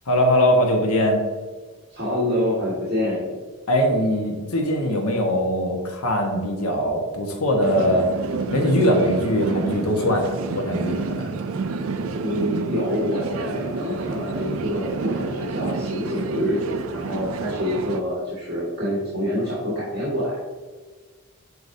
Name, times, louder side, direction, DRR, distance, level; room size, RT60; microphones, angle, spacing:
voice 1, 0.1-1.2 3.7-8.1 8.5-11.3, equal, 90° left, 1 dB, 1.2 m, -21 dB
voice 2, 1.9-3.4 12.2-20.4, equal, 45° right, -9 dB, 1.8 m, -26 dB
sound 1, 7.6-18.0, right 4 dB, 70° right, 0.4 m, -29 dB
8.1 x 4.7 x 2.7 m, 1.4 s
head